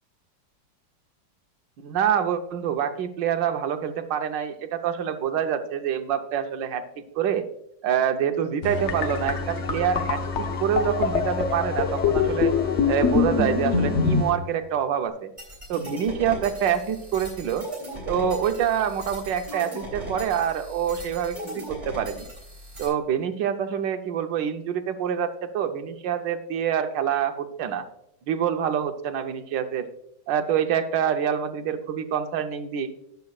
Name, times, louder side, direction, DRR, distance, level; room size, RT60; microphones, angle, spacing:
voice 1, 1.8-7.5 7.8-12.5 12.9-15.3 15.7-17.7 18.1-22.3 22.8-27.9 28.3-29.9 30.3-32.9, right 8 dB, 75° right, 7 dB, 1.4 m, -26 dB
sound 1, 8.6-14.7, left 3 dB, 70° left, 2.5 m, -33 dB
sound 2, 8.7-14.2, left 6 dB, 50° left, 0.9 m, -25 dB
sound 3, 15.4-22.9, equal, 15° right, 3.1 m, -38 dB
13.5 x 9.4 x 2.3 m, 0.78 s
omnidirectional pair, 2.1 m